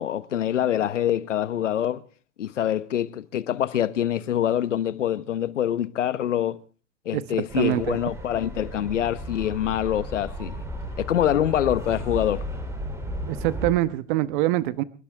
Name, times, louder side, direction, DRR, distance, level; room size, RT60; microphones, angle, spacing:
voice 1, 0.0-2.0 2.4-6.6 7.0-10.6 11.0-12.5, left 10 dB, 90° left, 1.3 m, -25 dB
voice 2, 7.1-8.0 13.3-14.8, right 16 dB, 45° right, 1.1 m, -25 dB
sound 1, 7.5-13.7, equal, 10° right, 3.4 m, -34 dB
26.5 x 12.0 x 3.6 m
hypercardioid pair, 135°, 36 cm